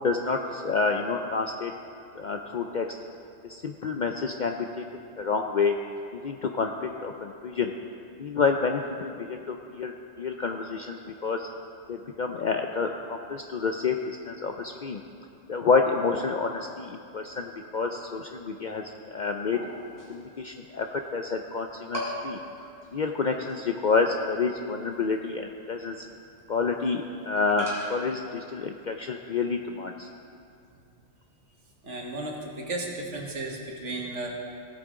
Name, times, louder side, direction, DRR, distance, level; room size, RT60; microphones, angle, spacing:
voice 1, 0.0-1.7 2.2-2.9 3.5-4.8 5.2-5.8 6.2-7.7 8.2-11.5 11.9-15.0 15.5-18.8 19.1-19.6 20.1-22.4 22.9-26.1 26.5-30.1, left 4 dB, 60° left, 4 dB, 0.5 m, -28 dB
sound 1, 19.5-20.6 20.9-21.0 21.4-21.6 21.9-28.3, equal, 20° right, 2.6 m, -39 dB
voice 2, 31.8-34.3, right 2 dB, 75° right, 0 dB, 1.8 m, -34 dB
16.5 x 8.7 x 3.7 m, 2.6 s
omnidirectional pair, 1.3 m